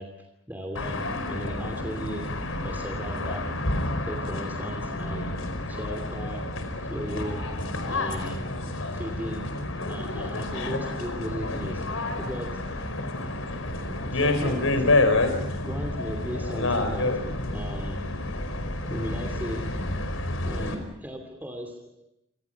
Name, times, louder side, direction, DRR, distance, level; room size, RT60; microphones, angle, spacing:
voice 1, 0.0-3.6 4.0-5.4 5.7-7.6 7.9-8.5 8.9-12.9 14.1-15.1 15.6-18.2 18.9-20.0 20.4-22.0, equal, 10° right, 3 dB, 2.7 m, -37 dB
sound 1, 0.8-20.8, left 2 dB, 90° left, 5.0 m, -29 dB
28.5 x 27.5 x 5.9 m, 0.82 s
head